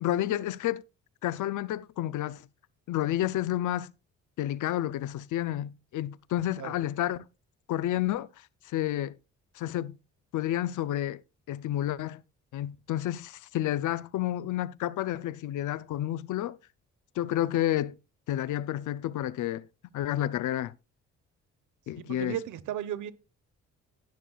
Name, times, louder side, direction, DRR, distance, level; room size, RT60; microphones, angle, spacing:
voice 1, 0.0-0.8 1.2-2.4 2.9-3.9 4.4-7.3 7.7-8.3 8.7-9.2 9.5-10.0 10.3-11.2 11.5-12.2 12.5-16.6 17.2-18.0 18.3-19.6 19.9-20.7 21.9-22.4, left 13 dB, 75° left, 0.6 m, -30 dB
voice 2, 22.0-23.1, right 11 dB, 75° right, 1.1 m, -35 dB
18.5 x 6.7 x 2.3 m
supercardioid pair, 65°, 31 cm